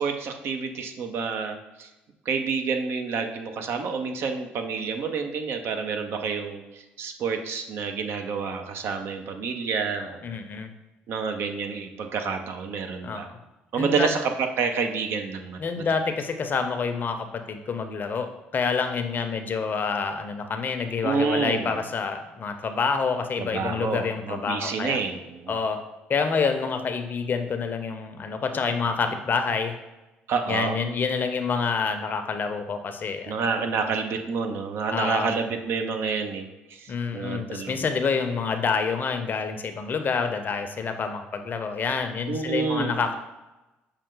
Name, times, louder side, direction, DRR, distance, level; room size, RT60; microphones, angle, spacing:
voice 1, 0.0-1.9 2.3-10.4 11.1-13.3 13.7-15.9 21.0-21.8 23.4-25.5 30.3-30.9 33.3-37.8 42.3-43.0, right 5 dB, 60° right, 6 dB, 0.6 m, -29 dB
voice 2, 10.2-10.7 13.0-13.4 13.8-14.1 15.6-25.0 25.5-25.8 26.1-29.7 30.5-33.4 34.9-35.3 36.9-43.1, left 5 dB, 45° left, 7 dB, 0.6 m, -27 dB
6.2 x 2.2 x 3.8 m, 1.0 s
hypercardioid pair, 60°, 5 cm